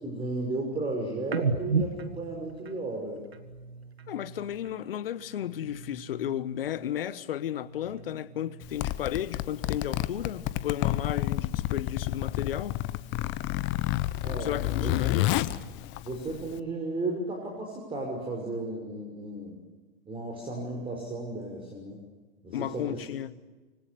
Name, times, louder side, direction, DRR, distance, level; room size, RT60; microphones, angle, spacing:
voice 1, 0.0-3.2 14.2-14.9 16.0-19.6 20.1-22.0 22.4-23.0, right 2 dB, 15° right, 6.1 m, -34 dB
sound 1, 1.3-4.8 5.2-7.0 7.3-9.1 9.5-11.3, right 4 dB, 85° right, 1.8 m, -37 dB
voice 2, 4.1-12.8 14.4-15.4 22.5-23.4, left 11 dB, 65° left, 1.2 m, -33 dB
Zipper (clothing), 8.6-16.6, left 16 dB, 40° left, 1.1 m, -30 dB
26.0 x 24.5 x 7.0 m
figure-of-eight pair, 100°, 31 cm